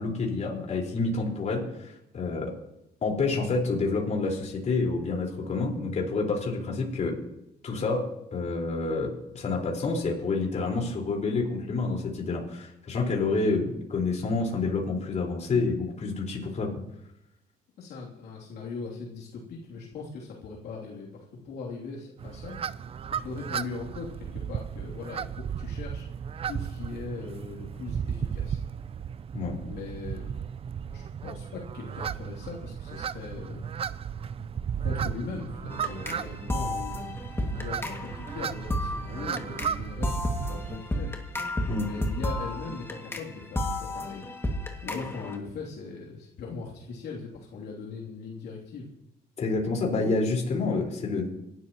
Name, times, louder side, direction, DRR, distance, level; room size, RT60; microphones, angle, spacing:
voice 1, 0.0-2.5 3.0-7.2 7.6-8.0 8.3-16.7 29.3-29.6 41.6-41.9 49.4-51.3, left 3 dB, 45° left, -1 dB, 4.8 m, -28 dB
voice 2, 17.8-22.6 23.1-26.1 26.5-28.6 29.6-30.4 30.9-33.7 34.8-37.1 37.4-41.1 41.8-44.3 44.8-48.9, left 4 dB, 70° left, -3 dB, 3.1 m, -40 dB
sound 1, 22.2-40.8, right 8 dB, 35° right, 0.5 m, -35 dB
sound 2, 35.7-45.4, left 1 dB, 15° left, 2.2 m, -32 dB
27.0 x 13.0 x 3.1 m, 0.87 s
cardioid pair, 110°, 17 cm